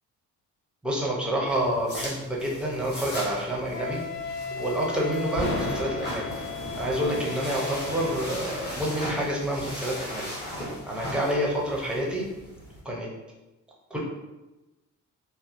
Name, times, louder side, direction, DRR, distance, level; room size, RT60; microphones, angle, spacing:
voice 1, 0.8-4.0 4.5-6.3 6.7-10.3 10.9-12.3 12.8-13.1 13.9-14.0, equal, 5° right, -3 dB, 0.5 m, -28 dB
sound 1, 1.4-12.8, equal, 35° left, 0.8 m, -38 dB
Wind instrument woodwind instrument, 3.7-8.3, left 5 dB, 70° left, 0.6 m, -36 dB
sound 2, 5.2-8.8, equal, 85° left, 1.1 m, -36 dB
2.7 x 2.0 x 2.4 m, 1.1 s
cardioid pair, 130°, 30 cm